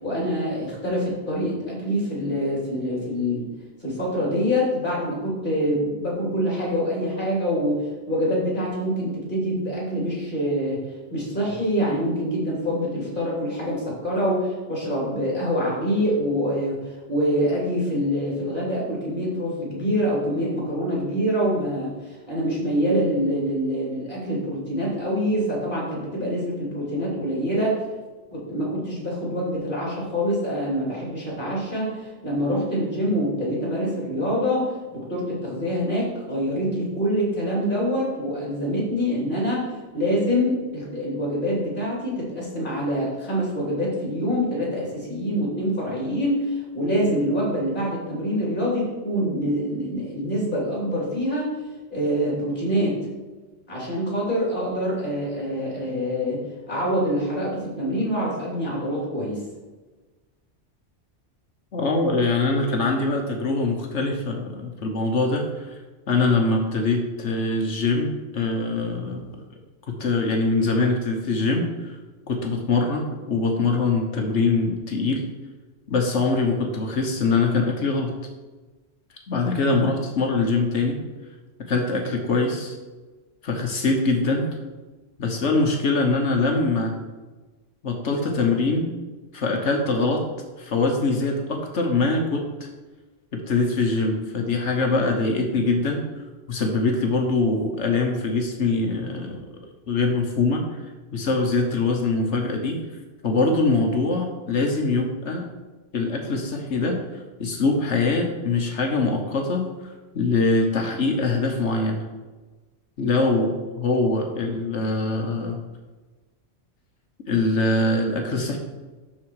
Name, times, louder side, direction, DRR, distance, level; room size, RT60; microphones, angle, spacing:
voice 1, 0.0-3.5 3.8-10.8 11.1-27.8 28.3-51.5 51.9-53.0 53.7-59.4, equal, 45° left, -4 dB, 3.4 m, -25 dB
voice 2, 61.7-65.8 66.1-69.3 69.9-71.9 72.3-75.2 75.9-78.1 79.3-81.0 81.7-82.8 83.4-84.5 85.2-87.0 87.8-88.9 89.3-90.2 90.6-92.7 93.5-96.0 96.5-99.4 99.9-100.6 101.1-102.8 103.2-105.5 105.9-107.0 107.4-109.7 110.1-112.0 113.0-115.6 117.3-118.6, left 3 dB, 70° left, 2 dB, 1.4 m, -23 dB
12.0 x 4.3 x 4.8 m, 1.2 s
omnidirectional pair, 1.3 m